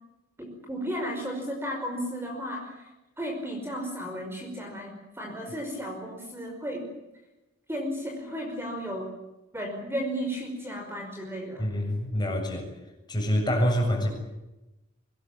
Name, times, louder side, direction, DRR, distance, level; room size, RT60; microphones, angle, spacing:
voice 1, 0.4-2.7 3.2-6.9 7.7-9.1 9.5-11.6, equal, 10° right, 2 dB, 5.4 m, -34 dB
voice 2, 11.6-12.7 13.1-14.1, equal, 20° left, 2 dB, 7.4 m, -26 dB
24.5 x 20.5 x 8.9 m, 0.98 s
head